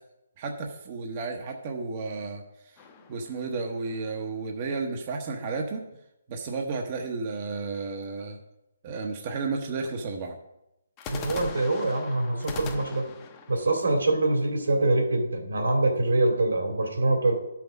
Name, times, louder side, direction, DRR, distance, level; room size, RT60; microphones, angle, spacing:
voice 1, 0.4-2.8 3.1-5.8 6.3-8.4 8.8-10.4, right 4 dB, 35° right, 2 dB, 0.9 m, -32 dB
sound 1, 2.8-4.2 11.0-14.9, left 4 dB, 20° left, 0.9 m, -41 dB
voice 2, 11.1-13.1 13.5-17.3, right 2 dB, 80° right, 2 dB, 2.9 m, -24 dB
12.5 x 5.9 x 5.2 m, 0.88 s
hypercardioid pair, 155°, 0 cm